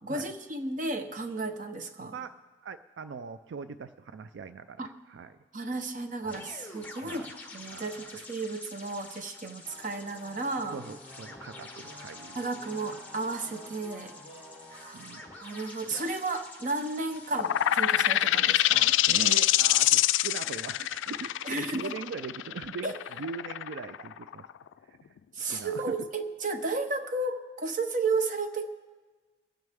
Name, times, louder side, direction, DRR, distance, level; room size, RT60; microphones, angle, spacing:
voice 1, 0.0-2.1 4.8-4.9 5.5-7.2 7.5-10.8 12.3-14.1 14.7-15.1 15.4-19.0 21.4-21.9 22.8-23.0 25.3-28.7, right 3 dB, 40° right, 6 dB, 0.9 m, -33 dB
voice 2, 2.6-5.3 7.0-7.3 7.7-8.2 10.7-12.4 14.9-15.2 19.1-24.5 24.8-25.0 25.4-26.1, right 5 dB, 75° right, 12 dB, 0.4 m, -41 dB
sound 1, 6.2-18.2, left 3 dB, 10° left, 1.1 m, -48 dB
sound 2, 9.6-16.1, left 1 dB, 10° right, 1.5 m, -50 dB
sound 3, 17.3-24.7, left 14 dB, 85° left, 0.3 m, -25 dB
22.5 x 9.5 x 3.5 m, 1.3 s
head